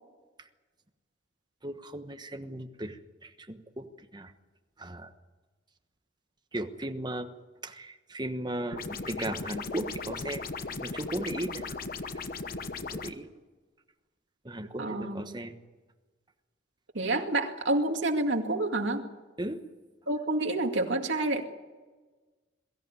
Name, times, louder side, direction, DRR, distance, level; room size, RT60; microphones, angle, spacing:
voice 1, 1.6-4.3 4.8-5.1 6.5-7.3 7.6-10.4 10.8-11.8 12.8-13.3 14.4-15.5 19.4-19.6, right 1 dB, 25° right, 6 dB, 1.2 m, -36 dB
sound 1, 8.7-13.1, left 4 dB, 50° left, 1.0 m, -37 dB
voice 2, 14.8-15.4 16.9-19.1 20.1-21.4, right 2 dB, 75° right, 3 dB, 2.2 m, -28 dB
22.5 x 14.0 x 9.7 m, 1.3 s
head